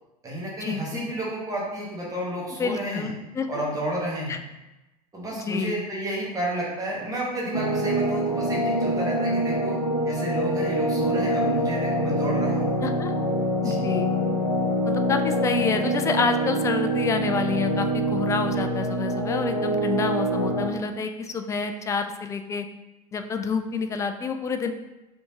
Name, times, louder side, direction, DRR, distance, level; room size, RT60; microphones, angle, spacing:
voice 1, 0.2-3.1 3.5-4.4 5.1-9.8 10.0-12.7 13.6-13.8, right 1 dB, 15° right, -5 dB, 1.6 m, -31 dB
voice 2, 2.6-3.1 3.3-3.5 4.3-4.4 5.3-5.8 12.8-13.1 13.6-14.1 14.9-22.7 23.1-24.7, left 5 dB, 15° left, 7 dB, 0.3 m, -28 dB
sound 1, 7.5-20.7, right 1 dB, 90° left, 0.5 m, -25 dB
5.0 x 3.5 x 2.9 m, 1.0 s
figure-of-eight pair, 75°, 20 cm